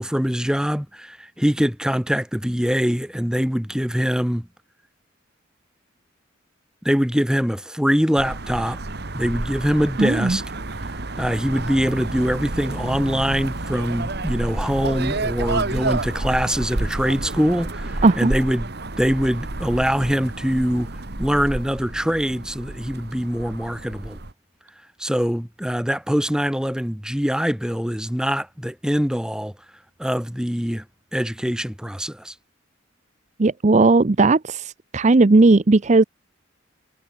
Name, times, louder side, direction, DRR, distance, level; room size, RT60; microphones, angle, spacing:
voice 1, 0.0-4.5 6.8-8.8 9.1-10.4 11.2-18.7 19.0-20.9 21.2-24.2 25.0-29.5 30.0-30.8 31.1-32.3, equal, 5° right, 1.4 m, -23 dB
sound 1, 8.2-24.3, right 2 dB, 55° right, 1.7 m, -30 dB
voice 2, 10.0-10.4 18.0-18.3 33.4-36.0, right 3 dB, 35° right, 0.6 m, -16 dB
head